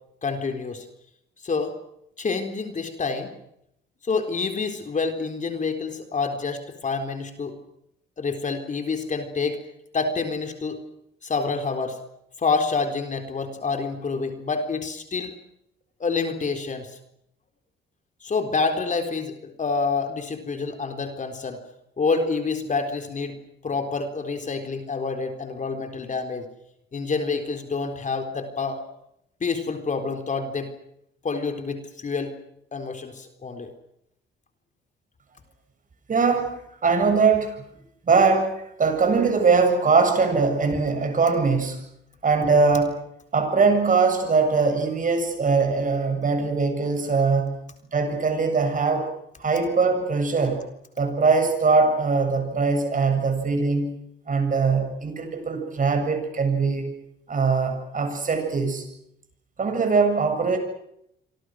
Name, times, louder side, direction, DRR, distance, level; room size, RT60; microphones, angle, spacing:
voice 1, 0.2-0.9 1.4-1.8 2.2-3.3 4.0-7.6 8.2-9.6 9.9-10.8 11.2-12.0 12.4-15.4 16.0-17.0 18.2-21.6 22.0-23.4 23.6-26.5 26.9-28.8 29.4-30.7 31.2-32.3 32.7-33.7, left 4 dB, 40° left, 6 dB, 4.0 m, -27 dB
voice 2, 36.1-37.6 38.0-41.8 42.2-42.9 43.3-47.5 47.9-49.1 49.4-50.7 51.0-54.0 54.3-56.9 57.3-58.8 59.6-60.6, right 4 dB, 40° right, 6 dB, 7.5 m, -21 dB
27.5 x 25.0 x 6.4 m, 0.76 s
cardioid pair, 90°, 20 cm